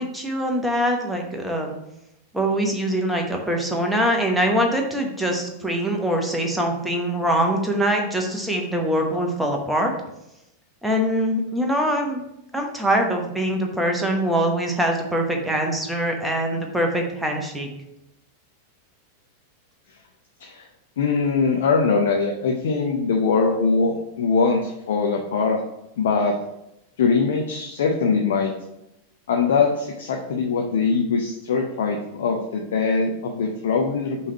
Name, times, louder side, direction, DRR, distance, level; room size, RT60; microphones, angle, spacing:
voice 1, 0.0-1.8 2.3-9.9 10.8-12.2 12.5-17.7, equal, 5° right, 1 dB, 1.0 m, -23 dB
voice 2, 21.0-25.6 26.0-26.4 27.0-28.5 29.3-34.3, left 4 dB, 60° left, 2 dB, 0.6 m, -22 dB
5.5 x 3.2 x 5.4 m, 0.85 s
figure-of-eight pair, 90°, 0 cm